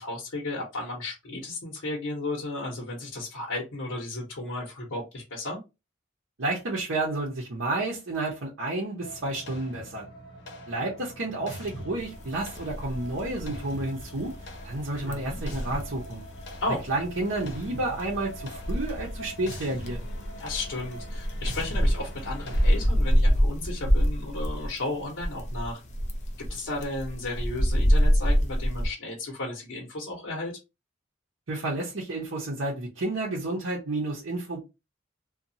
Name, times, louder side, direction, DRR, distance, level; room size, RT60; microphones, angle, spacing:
voice 1, 0.0-5.6 14.9-15.4 16.6-16.8 20.4-25.8 26.5-30.6, left 2 dB, 85° left, 0.8 m, -34 dB
voice 2, 6.4-10.1 10.7-14.3 14.6-16.2 16.9-20.1 31.5-34.6, right 2 dB, 75° right, 0.8 m, -31 dB
sound 1, 9.0-22.9, equal, 60° left, 0.8 m, -41 dB
sound 2, 12.0-28.9, equal, 35° left, 0.5 m, -26 dB
2.8 x 2.2 x 2.7 m
head